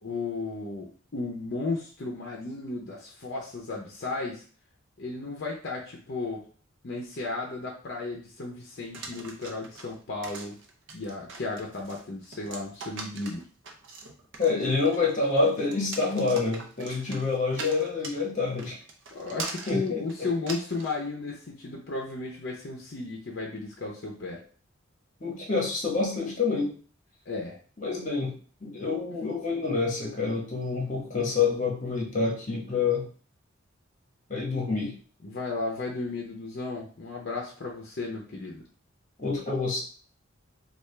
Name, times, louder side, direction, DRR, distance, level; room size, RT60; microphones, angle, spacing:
voice 1, 0.0-4.4 5.0-6.4 6.8-10.5 10.9-13.5 17.1-17.2 19.1-24.4 27.3-27.6 35.2-38.6, left 3 dB, 55° left, -1 dB, 0.6 m, -34 dB
sound 1, 8.9-21.0, right 3 dB, 65° right, 0.6 m, -42 dB
voice 2, 14.4-18.8 19.7-20.3 25.2-26.7 27.8-28.3 28.6-33.1 34.3-34.9 39.2-39.8, left 4 dB, 40° left, -2 dB, 1.1 m, -27 dB
3.4 x 2.4 x 3.2 m, 0.41 s
head